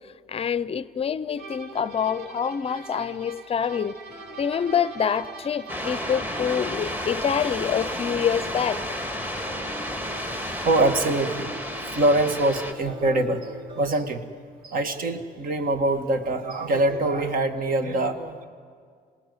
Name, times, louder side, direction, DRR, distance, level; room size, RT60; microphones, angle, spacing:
voice 1, 0.3-4.0 4.4-8.8, left 7 dB, 35° left, 0.6 m, -26 dB
sound 1, 1.4-7.3, right 4 dB, 75° right, 2.9 m, -43 dB
sound 2, 4.1-14.2, right 2 dB, 25° right, 4.8 m, -45 dB
sound 3, 5.7-12.7, equal, 10° right, 1.9 m, -32 dB
voice 2, 10.6-11.5 11.9-14.2 14.6-18.5, right 2 dB, 55° right, 2.0 m, -24 dB
27.0 x 18.5 x 9.7 m
cardioid pair, 110°, 17 cm